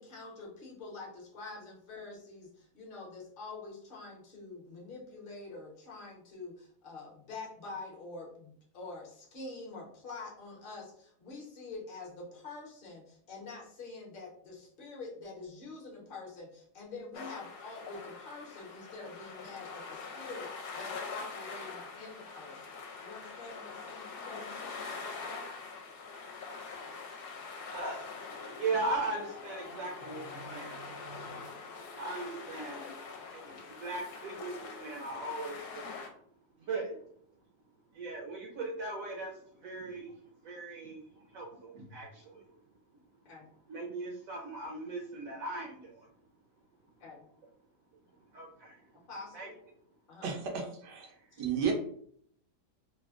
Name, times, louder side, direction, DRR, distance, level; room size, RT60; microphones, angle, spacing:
voice 1, 0.0-24.9 32.6-32.9 43.2-43.5 47.0-47.3 49.1-49.5 50.1-50.7 51.3-51.4, left 3 dB, 40° left, -2 dB, 0.8 m, -46 dB
sound 1, 17.1-36.1, left 4 dB, 75° left, 1.1 m, -44 dB
voice 2, 27.7-28.2 28.6-31.5 32.0-32.9 33.3-35.9 36.6-37.0 37.9-42.5 43.7-46.1 48.3-49.0 49.3-49.5, right 3 dB, 70° right, 0 dB, 0.9 m, -39 dB
voice 3, 50.2-51.1 51.4-51.7, right 7 dB, 90° right, 3 dB, 1.3 m, -33 dB
3.3 x 2.1 x 2.4 m, 0.62 s
omnidirectional pair, 1.7 m